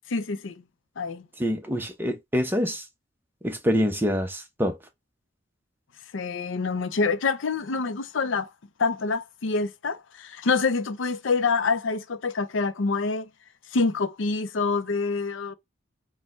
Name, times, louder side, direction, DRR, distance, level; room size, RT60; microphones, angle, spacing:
voice 1, 0.1-0.6 1.0-1.3 6.1-8.5 8.8-13.3 13.7-15.5, left 4 dB, 80° left, 0.6 m, -26 dB
voice 2, 1.4-2.8 3.4-4.8, equal, 10° right, 0.8 m, -26 dB
4.4 x 2.2 x 4.2 m
head